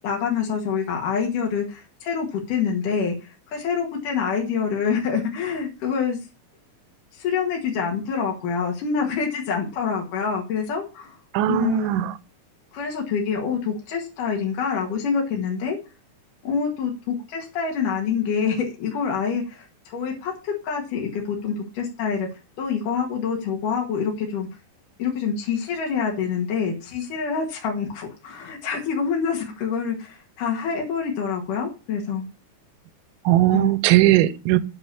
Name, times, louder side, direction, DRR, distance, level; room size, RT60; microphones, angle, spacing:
voice 1, 0.0-3.1 3.5-6.2 7.1-11.2 11.5-12.1 12.7-15.8 16.4-22.3 22.6-24.5 25.0-32.3 33.5-33.7, left 6 dB, 65° left, 3.3 m, -26 dB
voice 2, 11.3-12.1 33.3-34.6, right 16 dB, 80° right, 2.2 m, -18 dB
9.4 x 5.8 x 7.0 m
omnidirectional pair, 4.2 m